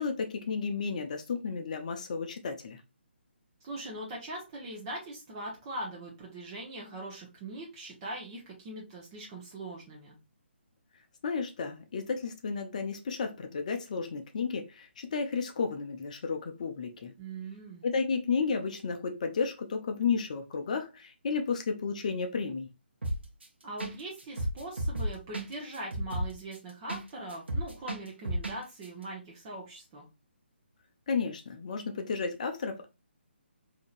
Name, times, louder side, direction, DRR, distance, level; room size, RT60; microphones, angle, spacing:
voice 1, 0.0-2.8 11.2-17.1 17.8-22.7 31.1-32.9, left 5 dB, 40° left, 0.6 m, -32 dB
voice 2, 3.6-10.1 17.2-17.8 23.6-30.0, right 1 dB, 25° right, 1.0 m, -41 dB
sound 1, 23.0-23.5 23.8-23.9 24.2-27.0 27.3-28.6 28.8-28.9, right 1 dB, 65° right, 1.0 m, -32 dB
5.1 x 2.8 x 2.5 m
figure-of-eight pair, 140°, 6 cm